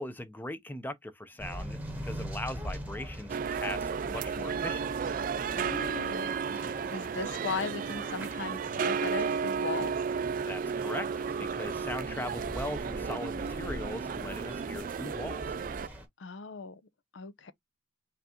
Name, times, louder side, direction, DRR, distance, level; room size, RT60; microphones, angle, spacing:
voice 1, 0.0-5.1 10.5-11.1 11.4-15.5, left 1 dB, 10° left, 0.6 m, -39 dB
sound 1, 1.4-16.1, equal, 10° right, 1.1 m, -43 dB
sound 2, 3.3-15.9, right 6 dB, 45° right, 0.3 m, -33 dB
voice 2, 5.5-9.9 16.2-16.8 17.1-17.5, left 5 dB, 85° left, 0.6 m, -38 dB
5.7 x 2.5 x 2.8 m
head